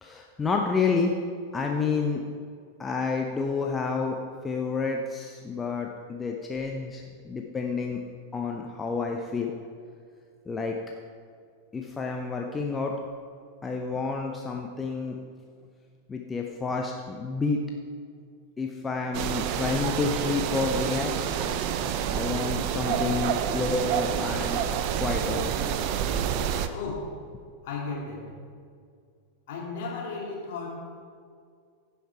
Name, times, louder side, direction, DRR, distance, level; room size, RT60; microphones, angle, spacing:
voice 1, 0.0-1.1 1.5-2.2 2.8-4.2 4.4-8.0 8.3-9.5 10.5-10.8 11.7-12.9 13.6-15.2 16.1-17.6 18.6-21.4 22.1-24.6 25.0-25.4, left 4 dB, 15° left, 1 dB, 0.7 m, -29 dB
sound 1, 19.1-26.7, right 8 dB, 45° right, 0.6 m, -28 dB
voice 2, 26.7-27.2 27.6-28.3 29.5-31.0, left 4 dB, 50° left, -2 dB, 2.7 m, -35 dB
15.5 x 5.8 x 4.7 m, 2.2 s
figure-of-eight pair, 90°, 0 cm